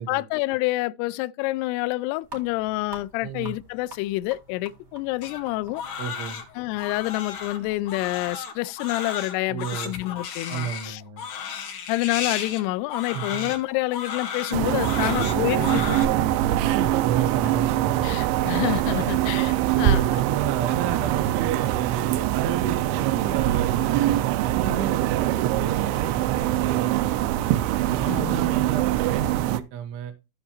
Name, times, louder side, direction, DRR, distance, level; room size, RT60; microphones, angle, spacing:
voice 1, 0.0-5.8 6.6-11.0 11.9-15.8 18.0-20.2 28.1-28.5, left 19 dB, 90° left, 2.3 m, -28 dB
sound 1, 2.2-8.4, right 1 dB, 15° right, 4.1 m, -48 dB
voice 2, 3.2-3.5 6.0-6.4 9.5-9.9 10.5-11.2 13.1-13.5 15.0-15.8 16.6-18.1 18.8-19.1 19.7-27.3 27.9-30.1, right 8 dB, 70° right, 3.3 m, -32 dB
Crying sobbing, 5.2-16.0, left 7 dB, 55° left, 3.4 m, -34 dB
sound 2, 14.5-29.6, right 13 dB, 90° right, 3.0 m, -23 dB
15.0 x 5.3 x 2.9 m
omnidirectional pair, 5.3 m